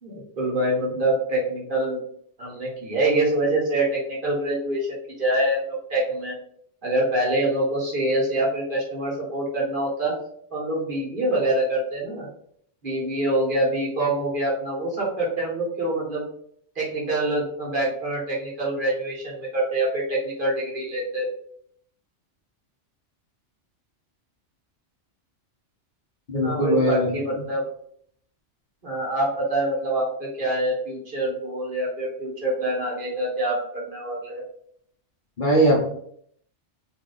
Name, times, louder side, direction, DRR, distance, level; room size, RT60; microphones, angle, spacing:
voice 1, 0.0-2.0 2.4-6.3 6.8-10.1 10.5-12.3 12.8-16.2 16.7-21.3 26.4-27.7 28.8-34.4, right 1 dB, 45° right, -4 dB, 1.3 m, -25 dB
voice 2, 26.3-27.1 35.4-35.8, equal, 45° left, -3 dB, 1.0 m, -20 dB
3.0 x 2.6 x 3.8 m, 0.65 s
omnidirectional pair, 1.2 m